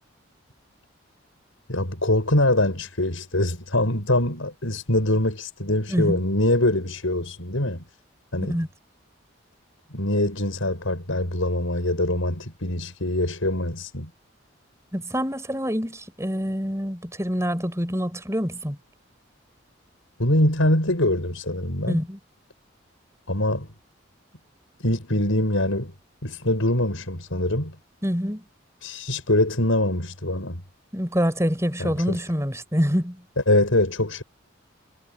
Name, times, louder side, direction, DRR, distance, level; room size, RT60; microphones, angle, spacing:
voice 1, 1.7-7.8 8.3-8.6 9.9-14.1 20.2-22.0 23.3-23.7 24.8-25.9 26.2-27.8 28.8-30.6 31.8-32.2 33.5-34.2, left 1 dB, 85° left, 6.3 m, -23 dB
voice 2, 14.9-18.8 21.9-22.2 28.0-28.4 30.9-33.2, equal, 15° right, 7.6 m, -26 dB
head